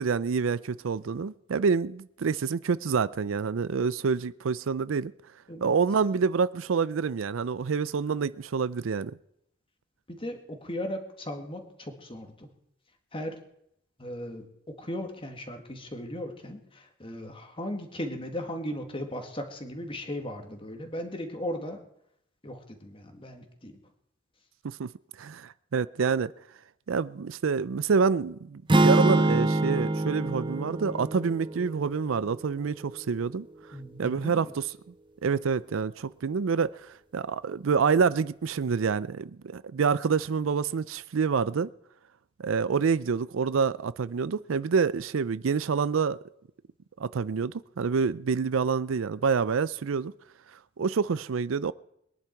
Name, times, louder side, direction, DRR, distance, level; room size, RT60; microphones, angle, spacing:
voice 1, 0.0-5.1 5.6-9.1 24.6-24.9 25.2-26.3 26.9-33.5 34.0-34.5 35.2-36.7 37.1-41.7 42.4-46.2 47.0-50.1 50.8-51.7, right 5 dB, 70° right, 0.5 m, -27 dB
voice 2, 10.1-12.5 13.1-13.4 14.0-21.8 22.4-23.8 33.7-34.5, left 1 dB, 25° left, 2.1 m, -37 dB
sound 1, 28.7-32.9, right 2 dB, 25° right, 0.8 m, -25 dB
22.0 x 10.5 x 4.6 m
head